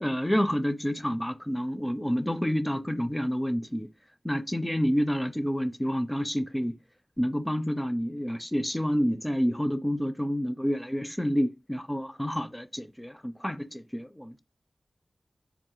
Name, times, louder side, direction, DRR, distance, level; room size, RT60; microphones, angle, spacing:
voice 1, 0.0-3.9 4.2-6.7 7.2-14.4, equal, 15° left, 0.5 m, -29 dB
4.0 x 2.4 x 3.8 m
wide cardioid pair, 55°, 0 cm